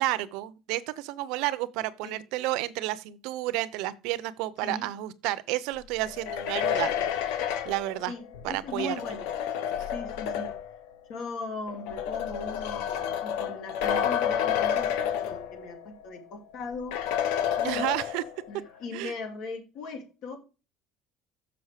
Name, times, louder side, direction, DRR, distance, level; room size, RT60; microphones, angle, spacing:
voice 1, 0.0-8.1 8.4-8.9 17.6-18.2 18.9-19.1, right 16 dB, 70° right, 0.6 m, -31 dB
sound 1, 6.1-10.8 11.7-15.8 16.2-16.3 16.9-18.5, left 9 dB, 85° left, 0.9 m, -30 dB
voice 2, 8.1-9.3 9.9-10.5 11.1-17.0 17.6-17.8 18.5-20.4, left 3 dB, 55° left, 2.3 m, -39 dB
6.9 x 5.6 x 4.8 m
cardioid pair, 175°, 0 cm